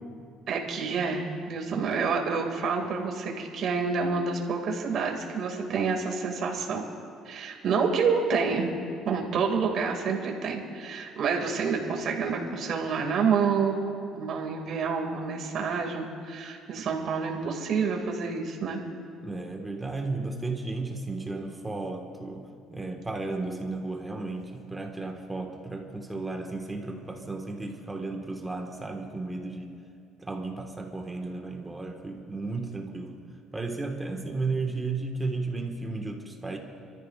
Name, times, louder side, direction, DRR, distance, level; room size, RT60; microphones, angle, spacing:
voice 1, 0.5-6.8 7.3-8.8 9.0-13.8 14.1-18.8, right 5 dB, 55° right, 2 dB, 2.2 m, -28 dB
voice 2, 19.2-22.4 22.7-29.7 30.2-33.2 33.5-36.6, right 3 dB, 15° right, 2 dB, 1.5 m, -34 dB
29.0 x 13.5 x 2.5 m, 2.4 s
cardioid pair, 115°, 0 cm